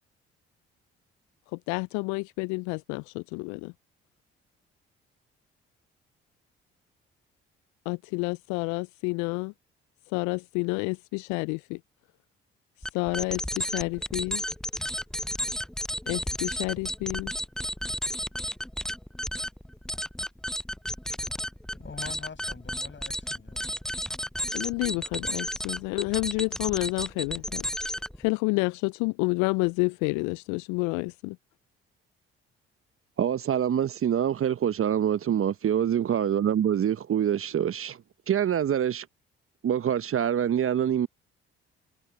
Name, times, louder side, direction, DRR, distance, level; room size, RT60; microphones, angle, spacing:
voice 1, 1.5-3.7 7.9-9.5 10.1-11.8 12.8-14.4 16.1-17.3 24.5-31.4, left 29 dB, 70° left, 0.5 m, -29 dB
sound 1, 12.8-28.3, equal, ahead, 0.8 m, -33 dB
voice 2, 21.8-23.8, left 5 dB, 40° left, 7.5 m, -44 dB
voice 3, 33.2-38.0 38.3-39.1 39.6-41.1, right 9 dB, 45° right, 1.0 m, -25 dB
hypercardioid pair, 45°, 31 cm